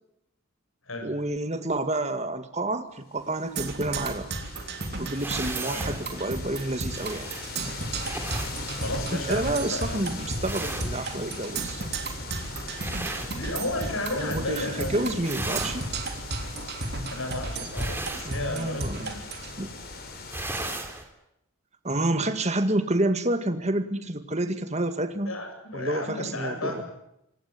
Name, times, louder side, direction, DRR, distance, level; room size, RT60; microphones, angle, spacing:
voice 1, 1.0-4.3 5.0-7.3 9.1-11.8 14.1-15.9 18.3-19.0 19.6-19.7 21.8-25.3 25.7-26.8, right 1 dB, 30° right, 9 dB, 2.0 m, -29 dB
sound 1, 3.2-20.8, left 3 dB, 45° left, 5.1 m, -40 dB
Percussion, 3.6-19.5, right 3 dB, 50° right, 3.3 m, -34 dB
sound 2, 5.1-14.1 14.4-14.8 15.1-21.0, right 2 dB, 10° right, 3.5 m, -38 dB
voice 2, 5.7-6.0 8.8-10.1 13.3-15.2 17.0-19.2 25.3-26.8, left 2 dB, 75° left, 5 dB, 7.8 m, -34 dB
26.5 x 19.0 x 9.7 m, 0.81 s
head